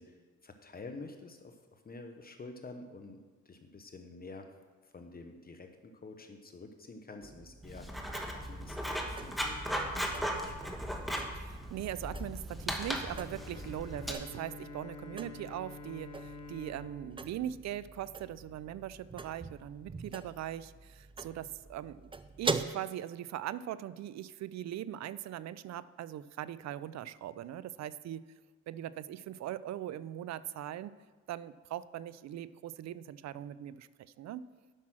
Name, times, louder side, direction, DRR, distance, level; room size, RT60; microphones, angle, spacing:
voice 1, 0.0-3.2 3.4-4.5 4.8-8.0 8.3-10.7, left 3 dB, 30° left, 5 dB, 1.0 m, -49 dB
sound 1, 7.2-22.7, right 4 dB, 15° right, 0.5 m, -44 dB
Writing, 7.6-14.1, equal, ahead, 1.3 m, -37 dB
voice 2, 11.3-22.1 22.4-28.3 28.7-31.0 31.3-34.4, right 11 dB, 60° right, 17 dB, 0.5 m, -40 dB
Bowed string instrument, 12.8-18.5, left 2 dB, 65° left, 1.4 m, -49 dB
10.0 x 6.0 x 6.1 m, 1.3 s
cardioid pair, 90°, 30 cm